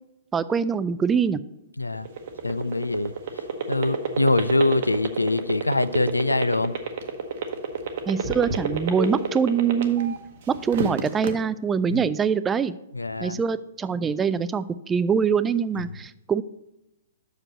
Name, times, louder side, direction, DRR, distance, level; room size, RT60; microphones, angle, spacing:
voice 1, 0.3-1.4 8.1-10.1 10.5-12.7 13.2-16.4, right 6 dB, 15° right, 15 dB, 0.3 m, -24 dB
sound 1, 1.9-10.2 10.5-11.3, right 7 dB, 50° right, 0.9 m, -27 dB
voice 2, 2.4-3.1 3.7-6.7 11.9-12.0 12.9-13.4, left 2 dB, 85° left, 15 dB, 0.3 m, -23 dB
6.2 x 5.1 x 6.2 m, 0.91 s
figure-of-eight pair, 115°, 0 cm